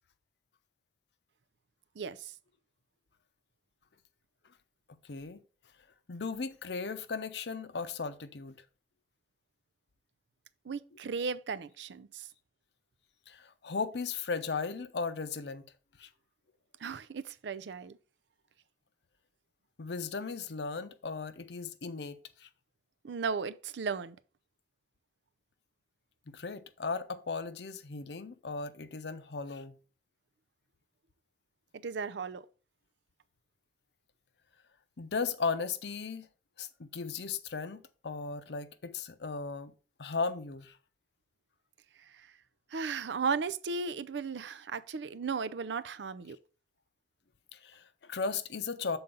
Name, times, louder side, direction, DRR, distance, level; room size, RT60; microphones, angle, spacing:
voice 1, 2.0-2.3 10.7-12.3 16.8-18.0 23.0-24.2 31.7-32.4 42.1-42.3 42.7-46.4, right 5 dB, 80° right, 0.5 m, -35 dB
voice 2, 4.9-5.4 6.1-8.6 13.3-15.7 16.0-16.1 19.8-22.5 26.3-29.7 35.0-36.3 36.6-39.7 40.0-40.8 47.5-49.0, left 4 dB, 70° left, 0.6 m, -36 dB
6.9 x 3.9 x 5.3 m
head